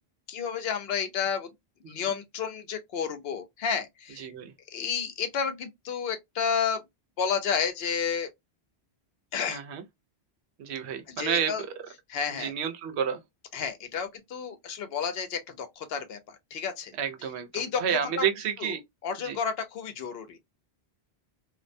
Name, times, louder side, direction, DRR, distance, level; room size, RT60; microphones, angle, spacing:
voice 1, 0.3-1.5 1.9-4.3 4.7-6.8 7.2-8.3 9.3-9.6 11.1-11.6 12.1-12.5 13.5-16.9 17.5-18.3 18.6-18.7 19.0-20.4, left 6 dB, 70° left, 0.8 m, -31 dB
voice 2, 4.2-4.5 9.5-9.8 10.6-11.7 12.4-13.2 17.0-18.8 19.2-19.4, right 8 dB, 80° right, 0.9 m, -30 dB
2.3 x 2.1 x 2.5 m
omnidirectional pair, 1.1 m